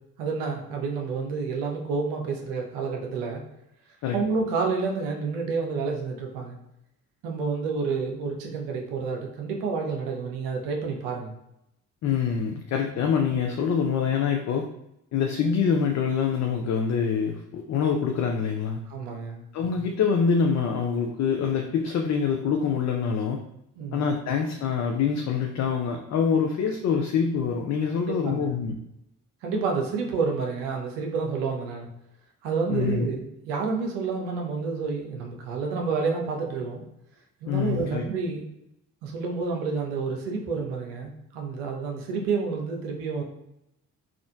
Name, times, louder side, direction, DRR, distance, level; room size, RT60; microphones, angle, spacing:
voice 1, 0.2-3.4 4.1-6.6 7.2-11.3 18.9-19.4 23.8-24.1 28.1-28.5 29.4-31.9 32.4-36.8 37.4-38.5 39.0-43.2, right 4 dB, 65° right, 1 dB, 0.8 m, -29 dB
voice 2, 12.0-14.7 15.1-18.9 19.5-23.4 23.9-28.8 32.7-33.1 37.5-38.0, left 6 dB, 40° left, 3 dB, 0.5 m, -25 dB
3.6 x 2.4 x 2.3 m, 0.83 s
figure-of-eight pair, 40°, 44 cm